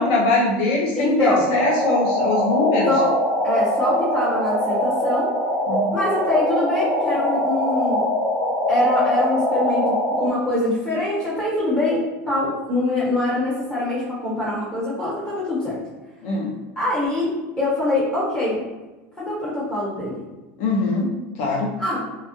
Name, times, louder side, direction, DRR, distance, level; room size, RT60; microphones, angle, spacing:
voice 1, 0.0-2.9 5.7-6.0 16.2-16.5 20.6-21.7, left 2 dB, 55° left, -1 dB, 0.4 m, -22 dB
voice 2, 1.0-1.5 2.8-3.1 3.4-5.3 5.9-8.1 8.7-15.8 16.8-18.6 19.2-20.2 21.8-22.0, left 1 dB, 10° left, -7 dB, 0.9 m, -23 dB
sound 1, 1.5-10.3, equal, 80° left, 1.0 m, -22 dB
2.7 x 2.2 x 2.7 m, 1.2 s
supercardioid pair, 175°, 7 cm